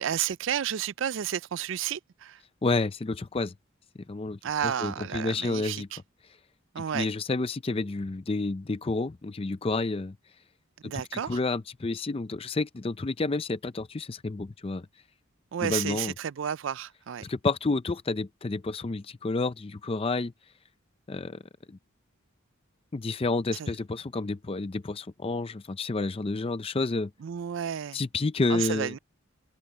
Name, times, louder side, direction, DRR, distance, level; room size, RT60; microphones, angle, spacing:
voice 1, 0.0-2.4 4.4-5.8 6.7-7.1 10.8-11.4 15.5-17.2 23.6-23.7 27.2-28.0 28.5-29.0, right 9 dB, 60° right, 0.4 m, -31 dB
voice 2, 2.6-3.5 4.1-6.0 6.9-10.2 10.8-14.9 15.6-16.1 17.2-20.3 21.1-21.4 21.7-21.8 22.9-27.1 27.9-28.9, left 3 dB, 25° left, 0.4 m, -30 dB
open air
head